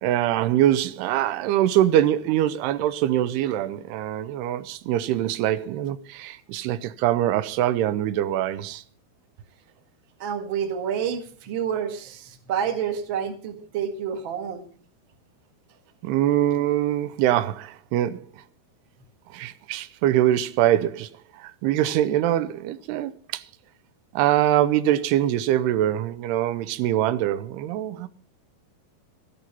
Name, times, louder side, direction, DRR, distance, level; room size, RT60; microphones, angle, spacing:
voice 1, 0.0-8.8 16.0-18.3 19.3-21.1 21.4-23.4 24.1-28.1, right 12 dB, 90° right, 2.9 m, -23 dB
voice 2, 10.2-14.6, right 8 dB, 45° right, 1.6 m, -29 dB
14.0 x 11.5 x 5.5 m
omnidirectional pair, 4.6 m